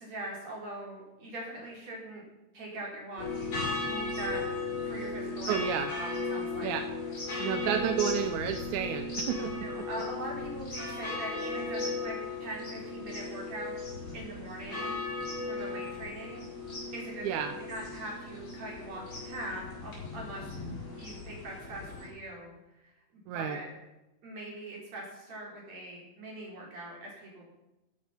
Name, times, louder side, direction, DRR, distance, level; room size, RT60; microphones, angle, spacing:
voice 1, 0.0-2.2 2.5-3.5 3.8-4.4 4.8-5.6 6.0-6.8 9.6-13.8 14.1-15.0 15.4-16.5 16.9-20.5 20.9-22.5 22.8-22.9 23.3-23.7 24.2-27.5, right 1 dB, 50° right, -2 dB, 4.9 m, -42 dB
sound 1, 3.2-22.1, left 3 dB, 30° left, 5.9 m, -36 dB
voice 2, 5.5-5.9 6.6-6.9 7.4-9.9 17.2-17.5 23.3-23.6, right 9 dB, 75° right, 8 dB, 1.9 m, -31 dB
14.0 x 8.5 x 5.9 m, 0.96 s
omnidirectional pair, 3.9 m